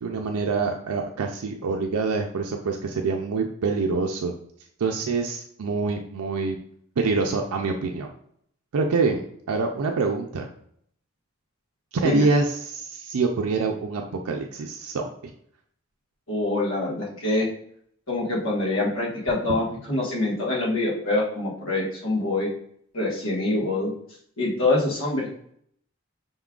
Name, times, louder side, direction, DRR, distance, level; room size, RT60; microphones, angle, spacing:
voice 1, 0.0-4.3 4.8-6.6 7.0-8.1 8.7-10.5 11.9-15.1, right 4 dB, 90° right, 2 dB, 0.4 m, -25 dB
voice 2, 16.3-17.5 18.1-22.5 22.9-23.9 24.4-25.3, left 2 dB, 70° left, -3 dB, 1.3 m, -25 dB
5.3 x 3.6 x 2.4 m, 0.66 s
head